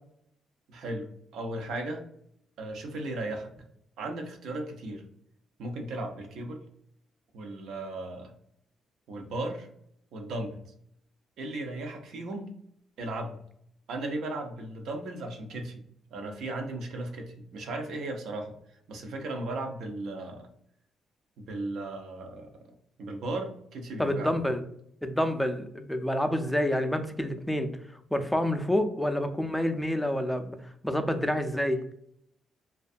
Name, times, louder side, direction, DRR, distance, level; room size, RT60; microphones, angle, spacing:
voice 1, 0.7-1.1 1.3-2.0 2.6-3.5 4.0-5.0 5.6-6.6 7.3-8.3 9.1-9.7 10.1-10.6 11.4-12.5 13.0-13.4 13.9-15.8 16.1-18.5 18.9-20.5 21.4-22.5 23.0-24.4, right 2 dB, 75° right, 3 dB, 0.5 m, -36 dB
voice 2, 24.0-24.6 25.0-27.7 28.1-31.8, left 1 dB, 5° left, 7 dB, 0.3 m, -28 dB
2.5 x 2.2 x 2.4 m, 0.71 s
cardioid pair, 90°, 0 cm